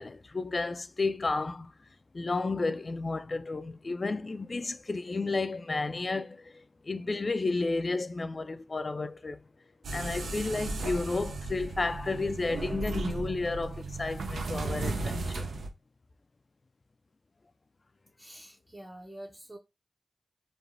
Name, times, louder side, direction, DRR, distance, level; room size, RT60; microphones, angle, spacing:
voice 1, 0.0-1.7 2.1-9.4 9.9-15.5, left 3 dB, 50° left, 0.3 m, -32 dB
sound 1, 9.8-15.7, right 2 dB, 90° right, 0.4 m, -35 dB
voice 2, 18.2-19.6, right 1 dB, 25° right, 0.6 m, -46 dB
3.1 x 2.1 x 2.4 m
cardioid pair, 40°, 0 cm